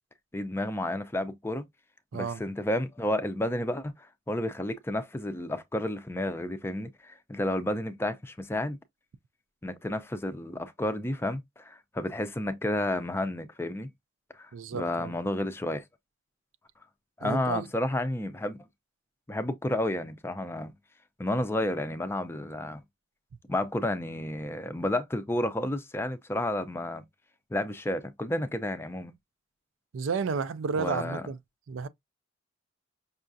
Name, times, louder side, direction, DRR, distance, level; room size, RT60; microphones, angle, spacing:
voice 1, 0.3-1.6 2.1-3.9 4.3-8.8 9.6-13.9 14.3-15.8 17.2-18.6 19.3-20.7 21.2-22.8 23.5-27.0 27.5-29.1 30.8-31.3, left 1 dB, 10° left, 0.4 m, -31 dB
voice 2, 2.1-2.4 14.5-15.1 17.2-17.7 29.9-31.4 31.7-31.9, right 5 dB, 85° right, 0.4 m, -32 dB
5.5 x 2.4 x 2.5 m
head